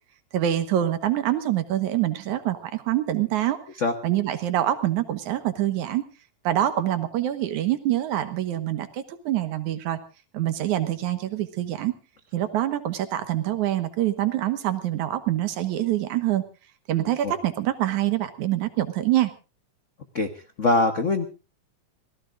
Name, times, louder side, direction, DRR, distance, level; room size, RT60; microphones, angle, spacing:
voice 1, 0.3-3.6 4.0-6.0 6.4-10.0 10.3-11.9 12.3-16.4 16.9-19.3, right 13 dB, 90° right, 10 dB, 2.7 m, -25 dB
voice 2, 20.1-21.2, left 3 dB, 85° left, 7 dB, 0.6 m, -23 dB
27.0 x 17.5 x 2.5 m, 0.33 s
omnidirectional pair, 3.3 m